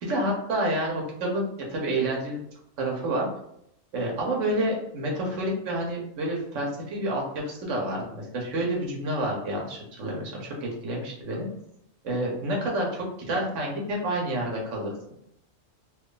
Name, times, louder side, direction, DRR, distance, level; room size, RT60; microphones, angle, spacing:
voice 1, 0.0-2.4 2.8-3.3 3.9-11.5 12.0-14.9, right 1 dB, 75° right, -1 dB, 1.1 m, -29 dB
3.0 x 2.3 x 3.7 m, 0.75 s
omnidirectional pair, 1.3 m